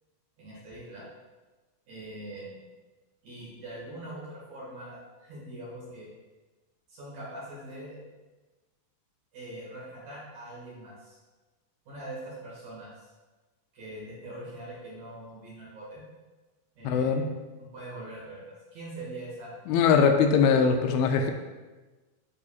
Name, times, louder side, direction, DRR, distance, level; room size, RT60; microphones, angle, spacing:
voice 1, 0.4-1.1 1.9-2.6 3.2-6.1 6.9-8.0 9.3-11.2 11.9-13.1 13.7-16.0 16.7-17.2 17.6-19.5 20.8-21.0, right 1 dB, 55° right, -7 dB, 2.8 m, -42 dB
voice 2, 16.8-17.3 19.7-21.3, left 6 dB, 85° left, 5 dB, 2.4 m, -22 dB
9.7 x 4.0 x 2.4 m, 1.2 s
omnidirectional pair, 4.4 m